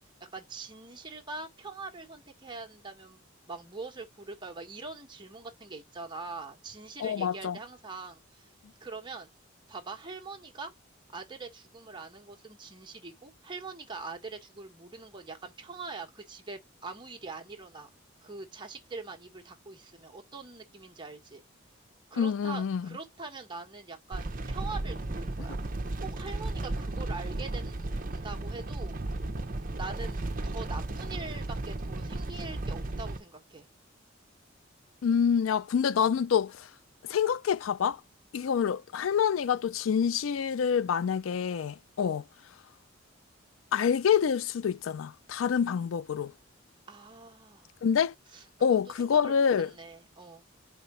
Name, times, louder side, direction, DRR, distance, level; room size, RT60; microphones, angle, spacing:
voice 1, 0.3-8.5 8.8-9.3 9.7-10.7 11.1-17.9 18.2-21.4 22.1-25.6 26.0-29.0 29.7-33.7 42.0-42.2 46.9-47.7 48.3-50.5, right 4 dB, 25° right, 1.5 m, -43 dB
voice 2, 7.0-7.6 22.2-22.9 35.0-36.7 37.0-38.0 38.3-42.2 43.7-46.3 47.8-48.1 48.6-49.7, left 7 dB, 85° left, 0.4 m, -27 dB
sound 1, 24.1-33.2, right 2 dB, 45° right, 0.9 m, -34 dB
5.0 x 3.5 x 5.5 m
head